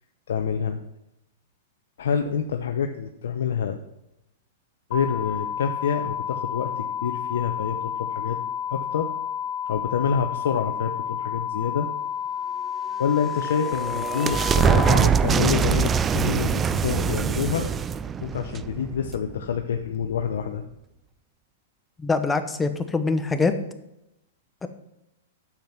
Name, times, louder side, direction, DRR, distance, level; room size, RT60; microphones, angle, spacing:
voice 1, 0.3-0.8 2.0-3.8 4.9-8.4 8.7-9.1 9.7-11.9 13.0-17.7 18.2-20.6, left 7 dB, 80° left, 4 dB, 0.9 m, -27 dB
sound 1, 4.9-14.9, left 8 dB, 40° left, 1.3 m, -30 dB
sound 2, 13.1-19.6, right 7 dB, 15° right, 0.3 m, -23 dB
voice 2, 22.0-23.5 24.6-24.7, left 4 dB, 10° left, 8 dB, 0.8 m, -24 dB
9.0 x 7.3 x 6.0 m, 0.86 s
hypercardioid pair, 145°, 0 cm